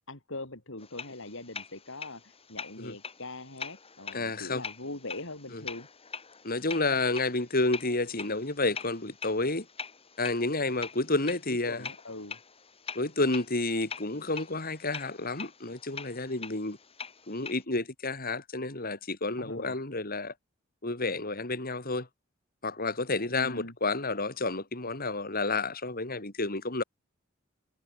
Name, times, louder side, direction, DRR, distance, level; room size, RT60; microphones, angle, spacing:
voice 1, 0.1-5.9 11.5-12.4 19.4-19.8 23.3-23.7, left 2 dB, 65° left, 5.3 m, -42 dB
sound 1, 0.8-17.6, left 6 dB, 30° left, 2.6 m, -44 dB
voice 2, 4.1-4.6 5.5-5.6 6.4-9.7 10.2-11.9 12.9-16.8 17.3-20.3 20.8-22.1 22.6-26.8, left 2 dB, 45° left, 4.4 m, -30 dB
head